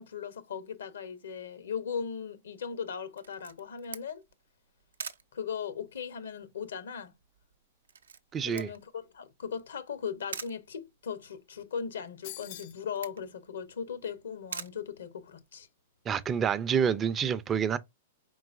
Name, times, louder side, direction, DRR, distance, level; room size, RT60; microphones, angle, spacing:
voice 1, 0.0-4.2 5.3-7.1 8.4-15.7, left 7 dB, 80° left, 0.8 m, -38 dB
Camera, 3.2-15.7, right 6 dB, 85° right, 0.5 m, -47 dB
voice 2, 8.3-8.7 16.1-17.8, right 7 dB, 25° right, 0.3 m, -28 dB
sound 1, 12.2-12.9, left 16 dB, 55° left, 0.3 m, -44 dB
4.3 x 3.8 x 2.5 m
hypercardioid pair, 120°, 0 cm